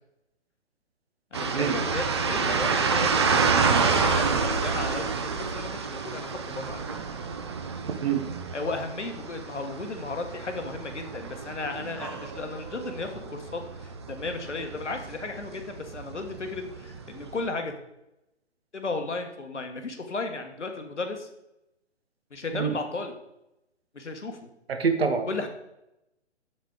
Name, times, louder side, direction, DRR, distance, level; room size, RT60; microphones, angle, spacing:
voice 1, 1.3-6.8 8.5-17.7 18.7-21.3 22.3-23.1 23.9-24.5 25.3-25.5, left 3 dB, 75° left, 5 dB, 1.4 m, -35 dB
sound 1, 1.3-17.5, right 5 dB, 25° right, 0.5 m, -29 dB
voice 2, 24.7-25.3, right 6 dB, 60° right, 7 dB, 1.2 m, -25 dB
7.2 x 6.6 x 3.8 m, 0.86 s
figure-of-eight pair, 135°, 35 cm